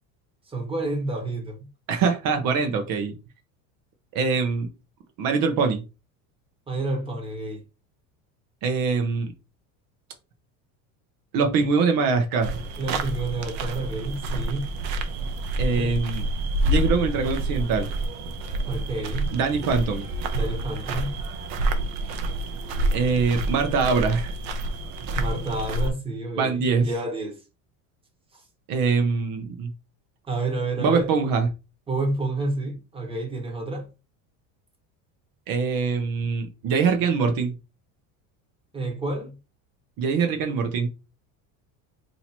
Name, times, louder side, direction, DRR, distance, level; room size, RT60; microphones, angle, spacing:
voice 1, 0.5-1.7 6.7-7.6 12.8-14.7 15.8-16.0 18.6-19.3 20.3-21.2 25.1-27.4 28.3-28.4 30.3-31.1 31.9-33.9 38.7-39.4, right 2 dB, 15° right, 1.3 m, -29 dB
voice 2, 1.9-3.1 4.1-4.7 5.2-5.8 8.6-9.3 11.3-12.5 15.6-16.2 16.6-17.9 19.3-20.1 22.9-24.3 26.4-26.9 28.7-29.7 30.8-31.5 35.5-37.5 40.0-40.9, right 5 dB, 55° right, 0.9 m, -23 dB
sound 1, 12.4-25.9, right 1 dB, 85° right, 0.8 m, -28 dB
2.8 x 2.8 x 4.3 m
supercardioid pair, 120°, 41 cm